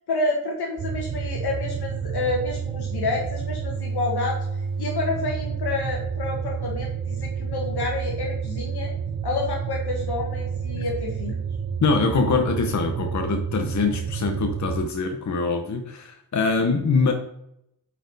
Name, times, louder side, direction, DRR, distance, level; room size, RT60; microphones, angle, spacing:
voice 1, 0.1-4.4 4.8-8.9 9.2-11.4, left 3 dB, 75° left, 0 dB, 1.4 m, -29 dB
sound 1, 0.8-14.9, right 6 dB, 35° right, 0.4 m, -30 dB
voice 2, 11.8-17.1, left 4 dB, 45° left, 4 dB, 0.8 m, -23 dB
8.9 x 4.3 x 4.0 m, 0.78 s
wide cardioid pair, 120°, 39 cm